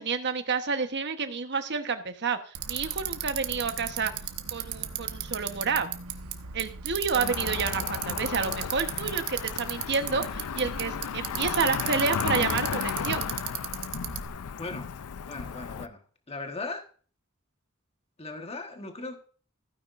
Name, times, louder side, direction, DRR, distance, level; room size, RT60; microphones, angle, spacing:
voice 1, 0.0-4.1 4.5-5.9 6.5-13.2, right 5 dB, 55° right, 1.1 m, -29 dB
Bicycle, 2.5-14.3, right 10 dB, 80° right, 1.1 m, -36 dB
Cricket / Motor vehicle (road), 7.1-15.9, left 7 dB, 90° left, 0.5 m, -34 dB
voice 2, 14.6-14.9 15.2-16.9 18.2-19.2, left 3 dB, 30° left, 1.3 m, -38 dB
15.5 x 9.6 x 2.6 m
head